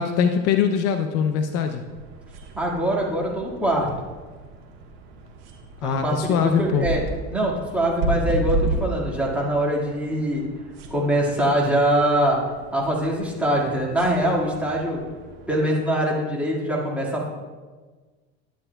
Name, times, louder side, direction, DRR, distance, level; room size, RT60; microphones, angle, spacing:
voice 1, 0.0-1.8 5.8-6.9, left 7 dB, 55° left, 7 dB, 0.6 m, -22 dB
sound 1, 1.8-15.5, right 2 dB, 75° right, 1.4 m, -33 dB
voice 2, 2.5-3.9 5.8-7.0 7.3-10.4 10.9-12.4 12.7-15.0 15.5-17.3, right 1 dB, 5° right, -4 dB, 1.8 m, -23 dB
10.0 x 9.8 x 2.2 m, 1.4 s
supercardioid pair, 130°, 30 cm